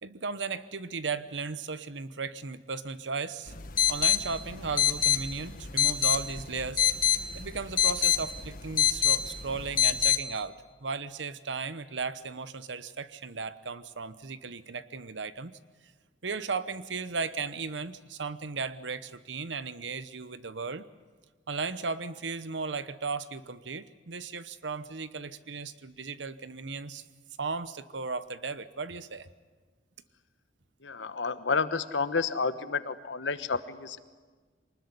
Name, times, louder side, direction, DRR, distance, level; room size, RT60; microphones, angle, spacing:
voice 1, 0.0-3.5 3.9-6.8 7.3-15.6 16.2-20.9 21.5-27.0 27.4-29.3, right 4 dB, 80° right, 14 dB, 1.0 m, -36 dB
sound 1, 3.5-10.2, left 9 dB, 50° left, 1.4 m, -27 dB
voice 2, 30.8-34.0, left 4 dB, 90° left, 12 dB, 1.2 m, -30 dB
24.0 x 20.0 x 9.8 m, 1.4 s
head